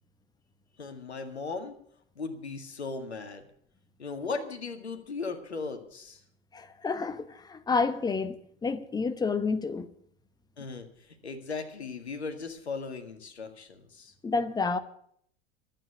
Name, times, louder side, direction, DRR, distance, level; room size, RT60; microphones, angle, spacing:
voice 1, 0.8-1.7 2.2-3.5 4.0-6.2 10.6-14.1, left 4 dB, 80° left, 1.9 m, -37 dB
voice 2, 6.5-9.9 14.2-14.8, left 4 dB, 10° left, 0.9 m, -29 dB
12.5 x 8.9 x 9.2 m
figure-of-eight pair, 85°, 32 cm